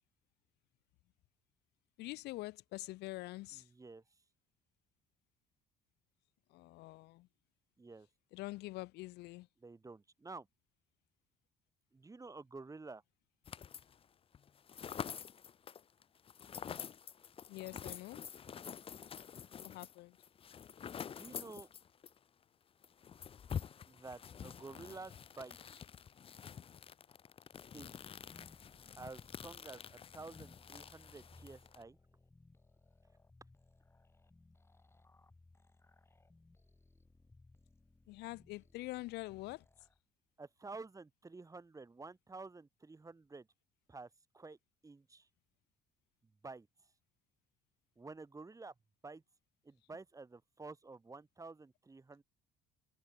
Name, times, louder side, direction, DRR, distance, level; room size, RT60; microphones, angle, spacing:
voice 1, 2.0-3.7 6.5-7.3 8.3-9.5 17.5-18.2 19.6-20.2 38.1-39.6, left 19 dB, 85° left, 1.4 m, -45 dB
voice 2, 3.5-4.0 7.8-8.1 9.6-10.5 11.9-13.0 21.0-21.7 23.9-25.8 27.7-28.1 29.0-32.0 40.4-43.5 43.9-44.6 44.8-45.3 46.2-46.7 48.0-48.7 49.0-49.2 49.6-52.2, right 3 dB, 20° right, 7.8 m, -51 dB
sound 1, 13.4-14.0 14.3-22.2 22.4-22.5 22.8-31.8, left 7 dB, 35° left, 0.6 m, -48 dB
sound 2, 27.5-40.0, left 2 dB, 15° left, 6.5 m, -64 dB
cardioid pair, 110°, 17 cm